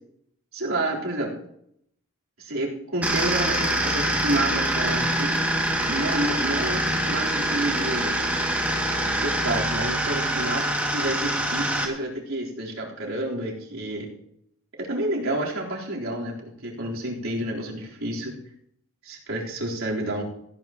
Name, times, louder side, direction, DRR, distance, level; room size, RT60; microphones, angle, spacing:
voice 1, 0.5-1.3 2.4-8.2 9.0-14.1 14.8-18.4 19.0-20.2, right 1 dB, 65° right, -4 dB, 4.0 m, -29 dB
sound 1, 3.0-11.9, right 1 dB, 5° right, 2.3 m, -25 dB
16.5 x 15.5 x 3.0 m, 0.73 s
head